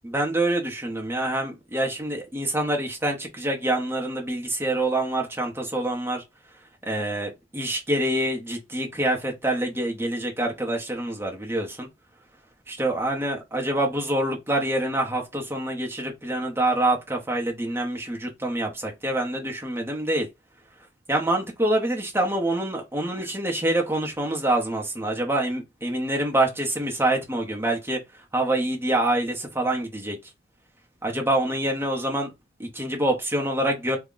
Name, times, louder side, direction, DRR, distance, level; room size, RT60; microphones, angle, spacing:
voice 1, 0.0-6.2 6.8-11.9 12.7-20.3 21.1-28.0 28.3-30.2 31.0-32.3 32.6-34.0, right 1 dB, 10° right, 0.7 m, -26 dB
3.4 x 2.1 x 3.8 m
head